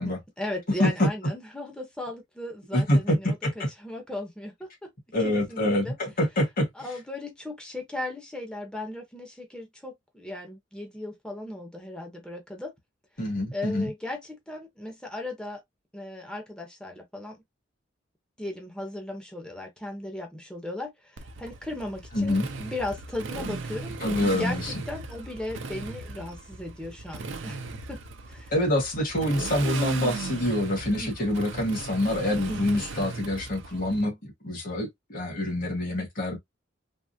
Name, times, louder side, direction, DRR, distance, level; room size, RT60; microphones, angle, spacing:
voice 1, 0.0-3.4 3.8-4.9 5.2-5.9 6.8-12.7 13.5-15.6 15.9-17.4 18.4-27.6 27.9-28.0 28.3-28.5 30.9-31.1 32.5-32.8, left 1 dB, 5° left, 0.8 m, -37 dB
voice 2, 2.7-3.7 5.1-6.7 13.2-13.9 22.1-22.5 24.0-24.7 28.5-34.2 34.4-36.4, left 1 dB, 50° left, 1.5 m, -26 dB
Motorcycle, 21.2-34.0, right 3 dB, 80° right, 0.6 m, -37 dB
3.5 x 2.0 x 2.7 m
head